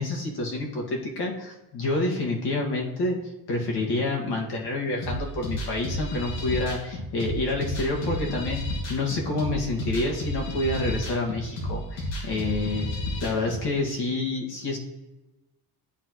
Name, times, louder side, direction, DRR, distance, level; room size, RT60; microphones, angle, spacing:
voice 1, 0.0-3.2 3.5-12.9 13.2-14.8, left 2 dB, 65° left, -1 dB, 1.9 m, -28 dB
sound 1, 5.0-13.6, left 1 dB, 80° left, 2.2 m, -32 dB
11.5 x 4.4 x 3.0 m, 1.0 s
cardioid pair, 135°, 41 cm